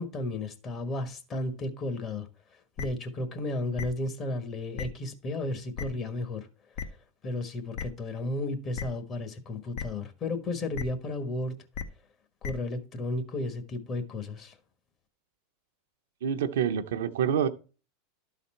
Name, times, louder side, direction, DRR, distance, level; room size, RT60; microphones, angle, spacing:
voice 1, 0.0-2.3 2.8-6.5 7.2-11.5 12.4-14.5, left 2 dB, 35° left, 1.4 m, -33 dB
sound 1, 2.8-2.9 3.8-3.9 4.8-4.9 5.8-5.9 6.8-6.9 7.8-7.9 8.8-8.9 9.8-9.9 10.7-10.8 11.7-11.8 12.4-12.5, left 7 dB, 60° left, 0.9 m, -34 dB
voice 2, 16.2-17.5, right 8 dB, 80° right, 0.7 m, -27 dB
12.0 x 4.1 x 4.3 m
hypercardioid pair, 105°, 0 cm